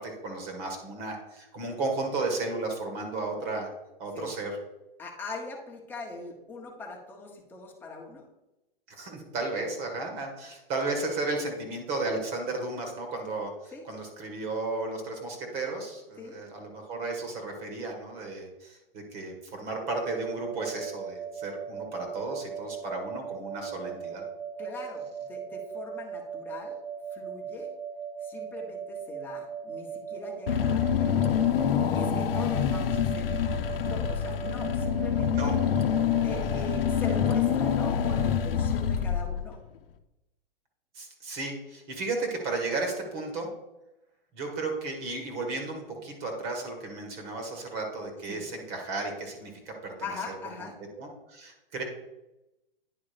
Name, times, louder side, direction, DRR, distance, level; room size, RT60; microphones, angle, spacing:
voice 1, 0.0-3.7 4.0-4.6 8.9-24.2 35.3-35.5 36.5-36.6 40.9-43.5 44.3-50.7 51.0-51.8, right 3 dB, 30° right, 3 dB, 1.8 m, -34 dB
voice 2, 5.0-8.2 13.7-13.8 16.2-16.4 24.6-26.8 27.1-27.7 28.2-31.5 31.9-33.6 33.9-35.6 36.2-39.6 48.3-48.4 50.0-50.7, left 3 dB, 5° left, -1 dB, 1.3 m, -41 dB
sound 1, 20.0-38.7, right 7 dB, 75° right, 0.6 m, -39 dB
Car / Engine, 30.5-39.6, left 9 dB, 70° left, 0.8 m, -26 dB
9.7 x 3.7 x 5.2 m, 0.95 s
hypercardioid pair, 145°, 29 cm